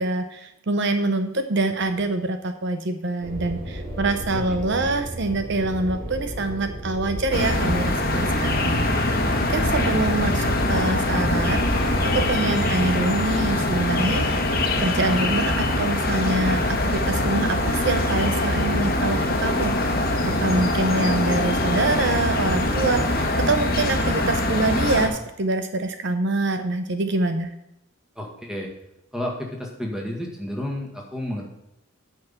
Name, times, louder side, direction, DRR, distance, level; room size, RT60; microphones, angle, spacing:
voice 1, 0.0-9.1 9.5-14.3 14.8-19.9 20.2-27.5, right 2 dB, 55° right, 8 dB, 0.7 m, -25 dB
sound 1, 3.2-12.3, equal, 40° right, 3.3 m, -33 dB
voice 2, 4.3-5.0 10.4-10.9 28.2-28.7 29.1-31.5, left 1 dB, 5° right, 0 dB, 1.9 m, -32 dB
sound 2, 7.3-25.1, left 1 dB, 45° left, 1.4 m, -23 dB
9.4 x 5.7 x 7.0 m, 0.86 s
head